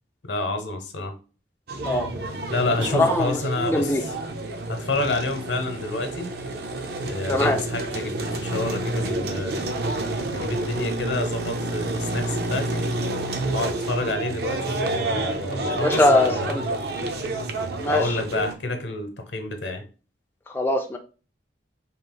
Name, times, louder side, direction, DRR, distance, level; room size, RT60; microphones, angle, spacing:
voice 1, 0.2-1.2 2.5-4.1 4.7-6.3 7.0-9.6 10.3-12.8 13.5-16.5 17.0-17.1 17.9-19.8, left 2 dB, 65° left, 5 dB, 0.9 m, -29 dB
sound 1, 1.7-18.6, right 2 dB, 55° right, 0.6 m, -29 dB
sound 2, 2.8-3.7, left 1 dB, 75° right, 1.8 m, -35 dB
voice 2, 2.9-3.4 3.6-4.0 7.3-7.6 15.6-16.8 17.8-18.2 20.5-21.0, left 1 dB, 10° left, 2 dB, 0.3 m, -22 dB
3.8 x 2.4 x 3.7 m, 0.35 s
head